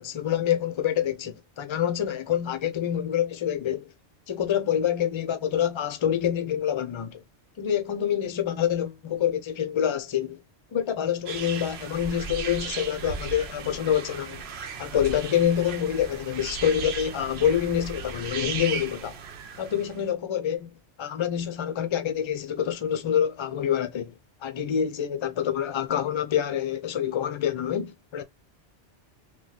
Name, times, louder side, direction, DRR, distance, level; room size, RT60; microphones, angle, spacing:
voice 1, 0.0-3.9 4.3-7.2 7.6-10.4 10.7-14.4 14.8-19.2 19.6-20.7 21.0-24.1 24.4-28.2, left 9 dB, 50° left, 0.3 m, -26 dB
sound 1, 11.3-20.0, right 5 dB, 65° right, 0.9 m, -36 dB
3.1 x 2.2 x 4.0 m
omnidirectional pair, 1.2 m